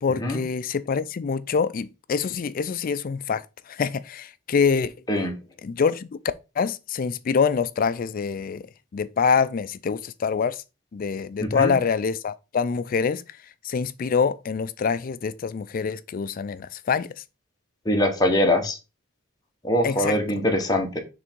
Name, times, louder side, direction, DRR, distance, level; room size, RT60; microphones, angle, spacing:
voice 1, 0.0-4.9 5.6-6.1 6.6-8.7 8.9-10.6 10.9-13.2 13.6-17.1 19.8-20.2, left 5 dB, 45° left, 0.4 m, -25 dB
voice 2, 11.4-11.7 17.8-18.8 19.6-21.0, left 1 dB, 20° left, 1.3 m, -22 dB
6.4 x 3.4 x 4.5 m
head